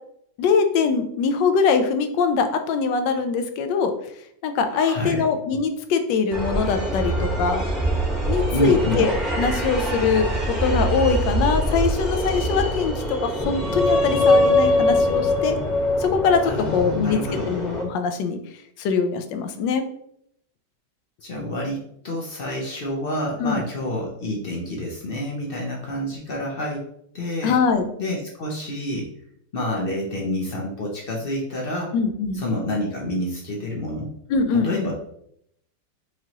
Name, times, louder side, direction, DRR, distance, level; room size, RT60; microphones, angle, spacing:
voice 1, 0.4-3.9 4.4-7.6 8.3-10.3 10.6-15.6 16.0-17.2 17.5-18.4 18.8-19.8 23.4-23.6 27.4-27.9 31.9-32.4 34.3-34.9, left 5 dB, 85° left, 7 dB, 1.3 m, -22 dB
voice 2, 4.7-5.2 8.5-9.0 16.4-17.5 21.2-26.8 27.1-27.5 28.0-29.1 29.5-31.9 32.3-34.1 34.5-34.9, left 1 dB, 65° left, -1 dB, 0.5 m, -28 dB
sound 1, 6.3-17.8, equal, ahead, 0.8 m, -23 dB
4.7 x 2.9 x 2.8 m, 0.71 s
omnidirectional pair, 1.9 m